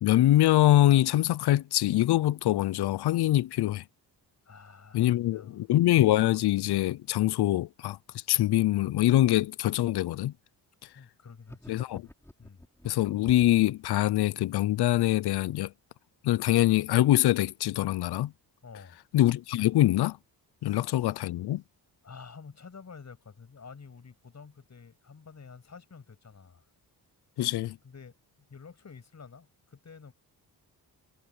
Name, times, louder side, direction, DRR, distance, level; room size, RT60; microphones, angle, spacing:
voice 1, 0.0-3.8 4.9-8.0 8.3-10.3 11.7-12.1 12.8-15.7 16.2-18.3 19.1-20.2 20.6-21.6 27.4-27.8, left 14 dB, 70° left, 0.6 m, -24 dB
voice 2, 4.5-5.7 10.9-11.7 12.4-12.7 18.6-19.0 20.6-21.0 22.0-26.7 27.8-30.1, left 5 dB, 40° left, 7.7 m, -49 dB
sound 1, 11.4-13.7, left 1 dB, 5° left, 5.3 m, -49 dB
cardioid pair, 110°, 41 cm